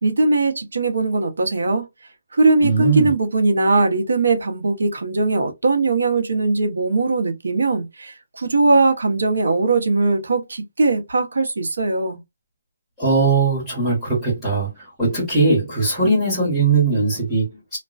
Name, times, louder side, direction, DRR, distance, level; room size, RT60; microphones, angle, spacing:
voice 1, 0.0-1.9 2.3-12.2, right 3 dB, 80° right, 0.8 m, -20 dB
voice 2, 2.6-3.1 13.0-17.8, right 3 dB, ahead, 1.2 m, -20 dB
2.4 x 2.1 x 2.4 m
hypercardioid pair, 175°, 0 cm